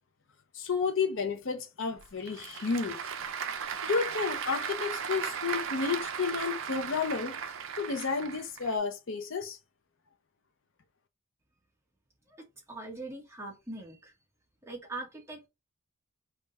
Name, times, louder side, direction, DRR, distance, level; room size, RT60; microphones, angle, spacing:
voice 1, 0.5-3.1 3.8-7.3 7.8-9.6, left 5 dB, 60° left, 0.6 m, -31 dB
Applause / Crowd, 2.0-8.7, right 7 dB, 65° right, 0.5 m, -36 dB
voice 2, 12.7-14.1 14.6-15.5, right 2 dB, 10° right, 1.2 m, -41 dB
3.5 x 2.2 x 4.0 m
head